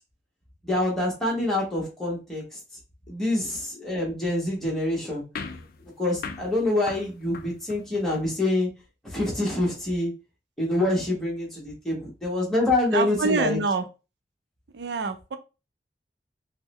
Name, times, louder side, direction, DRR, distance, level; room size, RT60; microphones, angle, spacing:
voice 1, 0.6-2.6 3.1-5.2 5.5-5.6 6.0-8.7 9.0-10.1 10.6-13.6, left 1 dB, ahead, -4 dB, 1.2 m, -26 dB
sound 1, 5.4-8.2, left 5 dB, 55° left, 0.4 m, -40 dB
voice 2, 12.9-13.9 14.7-15.4, right 4 dB, 70° right, 9 dB, 0.5 m, -26 dB
3.6 x 2.2 x 3.0 m, 0.30 s
head